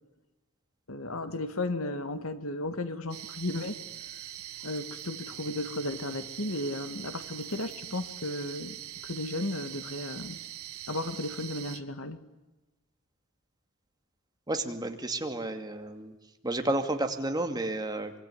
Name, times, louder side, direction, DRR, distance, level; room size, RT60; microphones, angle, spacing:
voice 1, 0.9-3.8 4.6-8.8 9.0-10.4 10.9-12.2, left 2 dB, 70° left, 10 dB, 1.9 m, -34 dB
sound 1, 3.1-11.8, right 12 dB, 90° right, 1.8 m, -43 dB
voice 2, 14.5-16.1 16.4-18.1, right 2 dB, 20° right, 5 dB, 2.4 m, -31 dB
25.5 x 23.5 x 9.8 m, 1.1 s
head